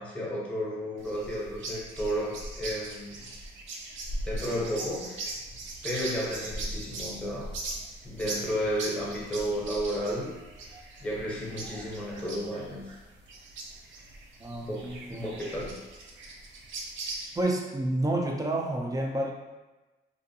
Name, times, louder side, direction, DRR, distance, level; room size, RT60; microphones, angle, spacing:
voice 1, 0.0-3.3 4.2-5.4 5.8-7.5 8.0-10.4 10.6-12.9 14.6-15.8, equal, 5° left, -5 dB, 0.8 m, -33 dB
sound 1, 1.0-17.4, right 2 dB, 75° right, 0.5 m, -40 dB
voice 2, 14.4-15.3 17.4-19.3, right 1 dB, 15° right, 1 dB, 0.4 m, -29 dB
2.6 x 2.2 x 2.7 m, 1.1 s
cardioid pair, 90°, 20 cm